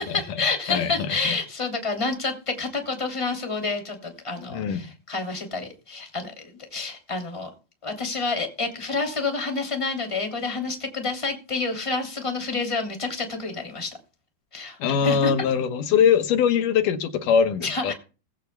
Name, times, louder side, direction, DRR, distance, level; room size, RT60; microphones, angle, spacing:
voice 1, 0.0-7.5 7.8-13.9 14.5-15.3 17.6-17.9, left 3 dB, 10° left, 2.1 m, -29 dB
voice 2, 4.5-4.9 14.8-17.9, left 7 dB, 70° left, 2.2 m, -22 dB
19.5 x 15.5 x 2.2 m
omnidirectional pair, 4.6 m